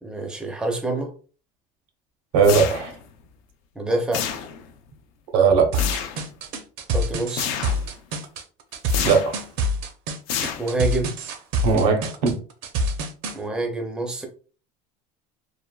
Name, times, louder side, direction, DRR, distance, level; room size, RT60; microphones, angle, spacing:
voice 1, 0.0-1.1 3.8-4.3 6.9-7.5 10.6-11.1 13.3-14.3, right 2 dB, 5° right, 0.4 m, -26 dB
voice 2, 2.3-2.9 5.3-5.8 9.0-9.4 11.6-12.4, right 5 dB, 85° right, 0.9 m, -19 dB
sound 1, 2.4-3.1 4.1-4.8 5.7-6.2 7.4-7.9 8.9-9.4 10.3-11.0, left 8 dB, 75° left, 0.5 m, -29 dB
sound 2, 5.7-13.4, equal, 60° right, 0.6 m, -26 dB
3.4 x 2.1 x 2.2 m
cardioid pair, 145°, 17 cm